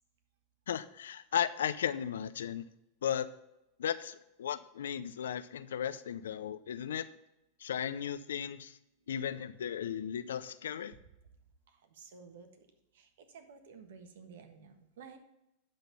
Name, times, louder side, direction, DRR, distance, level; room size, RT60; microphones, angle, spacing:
voice 1, 0.7-2.7 3.0-3.3 3.8-7.1 7.6-8.8 9.1-10.9, left 9 dB, 85° left, 14 dB, 0.6 m, -35 dB
voice 2, 11.7-12.7 12.9-15.2, right 5 dB, 80° right, 7 dB, 1.4 m, -53 dB
11.5 x 4.0 x 6.8 m, 0.89 s
hypercardioid pair, 110°, 0 cm